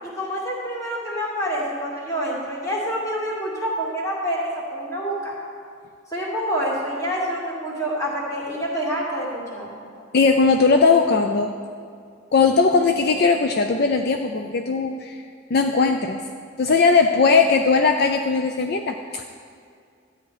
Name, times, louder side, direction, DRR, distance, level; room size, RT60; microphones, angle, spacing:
voice 1, 0.0-5.3 6.1-9.8, equal, 15° left, -5 dB, 2.3 m, -27 dB
voice 2, 10.1-11.5 12.3-15.2 15.5-16.2 16.6-19.2, left 4 dB, 50° left, 5 dB, 0.4 m, -19 dB
13.0 x 9.2 x 4.9 m, 2.2 s
head